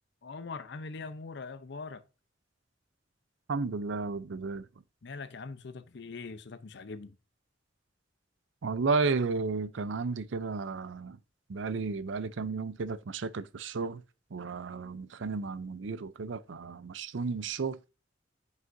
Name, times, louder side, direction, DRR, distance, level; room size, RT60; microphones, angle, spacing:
voice 1, 0.2-2.0 5.0-7.2, left 4 dB, 65° left, 0.7 m, -42 dB
voice 2, 3.5-4.7 8.6-11.2 11.5-14.0 14.3-17.8, right 4 dB, 85° right, 0.5 m, -33 dB
9.5 x 5.3 x 2.6 m
head